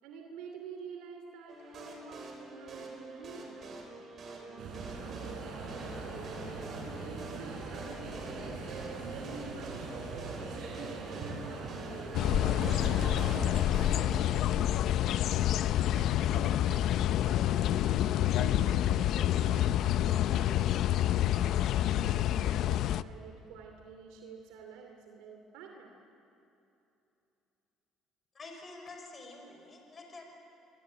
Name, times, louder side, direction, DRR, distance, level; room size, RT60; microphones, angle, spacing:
voice 1, 0.0-3.9 4.3-5.5 6.0-8.6 9.1-14.8 15.7-26.0, right 5 dB, 85° right, 3 dB, 2.8 m, -49 dB
sound 1, 1.5-14.2, right 2 dB, 45° right, 6.3 m, -46 dB
sound 2, 4.6-13.5, right 3 dB, 60° right, 7.5 m, -41 dB
sound 3, 12.1-23.0, left 12 dB, 65° left, 0.6 m, -28 dB
voice 2, 28.3-30.3, left 3 dB, 35° left, 3 dB, 5.9 m, -48 dB
27.0 x 23.0 x 8.9 m, 2.9 s
cardioid pair, 100°, 0 cm